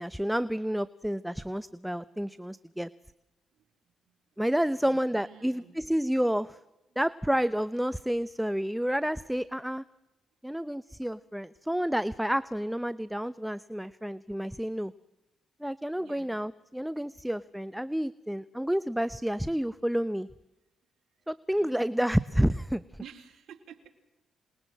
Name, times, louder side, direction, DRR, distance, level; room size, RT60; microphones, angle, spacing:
voice 1, 0.0-2.9 4.4-6.6 7.0-9.8 10.4-14.9 15.6-20.3 21.3-22.8, equal, 5° right, 16 dB, 0.8 m, -30 dB
voice 2, 4.7-5.8 6.9-7.0 16.0-16.4 16.9-17.3 21.2-21.3 21.6-21.9 23.0-23.9, right 8 dB, 70° right, 5 dB, 3.8 m, -52 dB
27.0 x 21.0 x 7.7 m, 0.96 s
cardioid pair, 65°, 0 cm